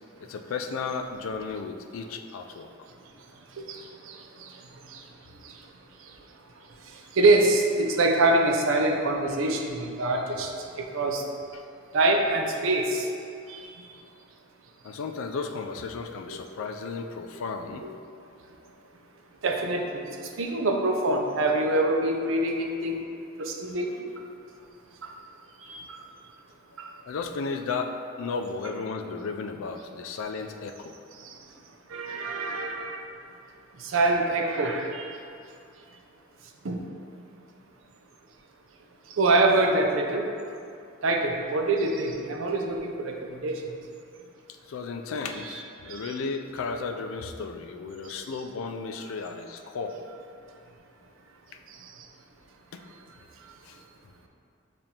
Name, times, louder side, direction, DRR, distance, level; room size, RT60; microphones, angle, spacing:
voice 1, 0.2-2.7 11.5-11.6 14.8-17.9 18.6-18.8 26.7-31.0 44.7-50.0 52.7-52.8 53.6-53.8, left 4 dB, 75° left, 5 dB, 0.3 m, -34 dB
voice 2, 4.1-4.5 4.9-5.0 7.2-10.5 10.8-11.2 11.9-13.1 13.5-13.7 16.3-16.4 17.8-17.9 19.4-20.0 20.4-23.0 23.4-23.9 25.0-25.1 25.7-26.0 26.8-26.9 31.9-33.0 33.8-35.1 36.6-36.8 39.2-40.3 41.0-43.6 45.5-45.6 45.9-46.1, right 2 dB, 70° right, 2 dB, 0.5 m, -25 dB
7.0 x 2.5 x 2.9 m, 2.5 s
head